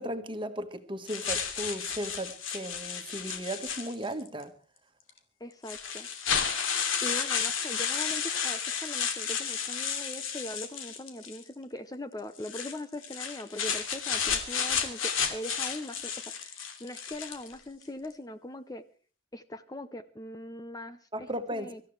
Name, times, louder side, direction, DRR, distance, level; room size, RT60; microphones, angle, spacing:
voice 1, 0.0-4.5 21.1-21.7, right 1 dB, 25° right, 1.6 m, -36 dB
sound 1, 1.1-4.3 5.1-5.2 5.7-11.4 12.4-17.5, left 7 dB, 85° left, 2.9 m, -32 dB
voice 2, 5.4-6.1 7.0-18.8 19.3-21.8, left 1 dB, 20° left, 0.7 m, -41 dB
25.5 x 14.5 x 3.3 m
head